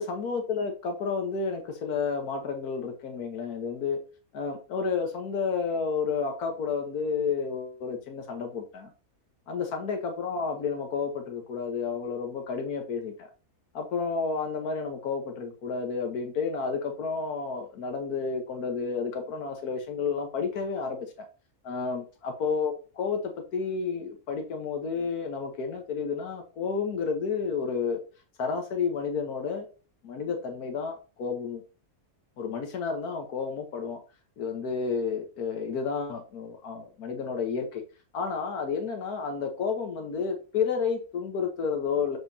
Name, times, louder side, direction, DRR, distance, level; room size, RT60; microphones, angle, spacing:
voice 1, 0.0-4.0 4.3-8.9 9.5-13.3 13.7-21.3 21.6-28.0 28.4-29.7 30.0-31.6 32.4-34.0 34.4-37.8 38.1-42.2, left 5 dB, 90° left, 3 dB, 1.6 m, -31 dB
7.2 x 5.9 x 2.7 m, 0.34 s
omnidirectional pair, 1.5 m